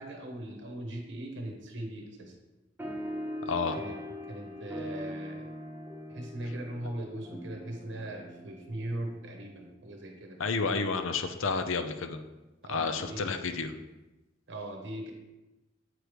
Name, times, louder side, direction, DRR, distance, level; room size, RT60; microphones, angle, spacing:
voice 1, 0.0-2.3 3.7-4.0 4.3-5.5 6.1-10.4 12.6-13.3 14.5-15.1, right 1 dB, 65° right, 2 dB, 0.9 m, -39 dB
sound 1, 2.8-9.7, equal, 10° right, 0.7 m, -41 dB
voice 2, 3.4-3.8 10.4-12.2 12.7-13.7, left 4 dB, 85° left, 8 dB, 0.5 m, -30 dB
7.8 x 4.9 x 3.1 m, 1.1 s
head